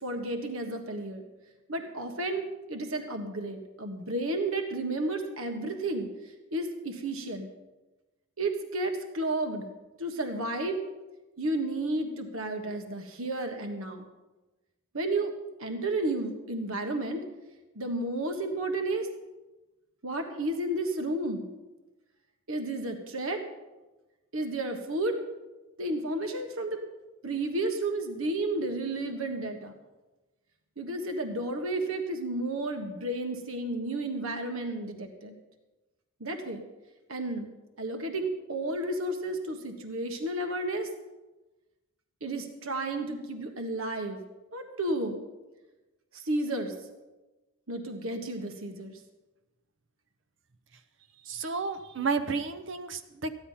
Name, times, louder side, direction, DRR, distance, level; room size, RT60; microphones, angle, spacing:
voice 1, 0.0-1.2 1.7-6.1 6.5-7.5 8.4-9.7 10.0-10.8 11.4-14.0 14.9-15.3 15.6-17.2 17.7-19.1 20.0-21.5 22.5-23.4 24.3-25.2 25.8-26.8 27.2-29.7 30.8-35.4 36.2-36.6 37.1-37.5 37.8-40.9 42.2-44.2 44.5-45.2 46.1-46.7 47.7-49.0, right 2 dB, 70° right, 5 dB, 1.4 m, -32 dB
voice 2, 51.2-53.4, right 4 dB, 55° right, 8 dB, 0.8 m, -32 dB
14.5 x 10.5 x 5.6 m, 1.1 s
head